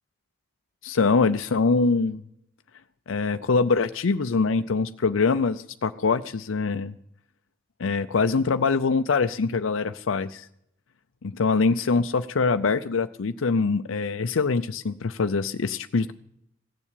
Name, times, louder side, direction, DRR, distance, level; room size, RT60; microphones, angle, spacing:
voice 1, 0.8-2.2 3.1-6.9 7.8-10.5 11.2-16.1, left 4 dB, 80° left, 10 dB, 0.6 m, -24 dB
16.5 x 7.3 x 9.9 m, 0.76 s
head